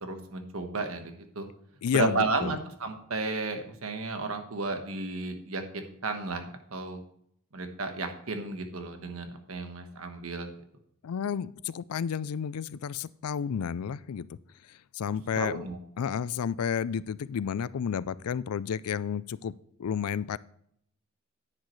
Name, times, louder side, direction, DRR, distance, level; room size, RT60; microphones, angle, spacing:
voice 1, 0.0-1.5 1.9-6.4 6.7-7.0 7.5-10.5 15.3-15.8, right 3 dB, 70° right, 6 dB, 1.3 m, -33 dB
voice 2, 1.8-2.5 11.0-14.4 15.0-15.7 16.0-19.5 19.8-20.4, left 7 dB, 90° left, 19 dB, 0.4 m, -31 dB
10.5 x 9.7 x 3.2 m, 0.70 s
head